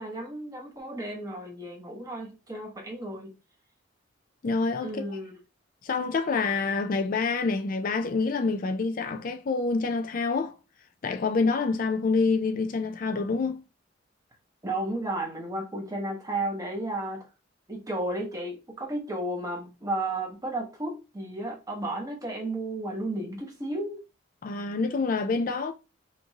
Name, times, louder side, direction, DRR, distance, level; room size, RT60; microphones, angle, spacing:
voice 1, 0.0-3.3 4.8-5.3 14.6-17.3 17.7-24.0, right 1 dB, 20° right, 1.2 m, -33 dB
voice 2, 4.4-5.2 5.8-10.5 11.0-13.6 24.4-25.7, left 4 dB, 45° left, 0.4 m, -27 dB
5.1 x 2.6 x 2.8 m
head